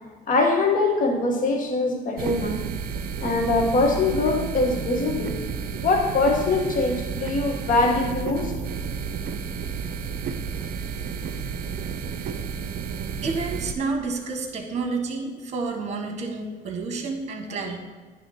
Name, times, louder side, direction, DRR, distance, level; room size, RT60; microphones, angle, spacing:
voice 1, 0.3-2.6 3.2-5.4 5.7-8.5, left 3 dB, 50° left, 2 dB, 1.4 m, -23 dB
sound 1, 2.2-13.7, right 6 dB, 55° right, 0.6 m, -31 dB
voice 2, 13.2-17.8, right 4 dB, 40° right, 3 dB, 1.5 m, -29 dB
9.4 x 3.4 x 5.5 m, 1.4 s
supercardioid pair, 80°, 18 cm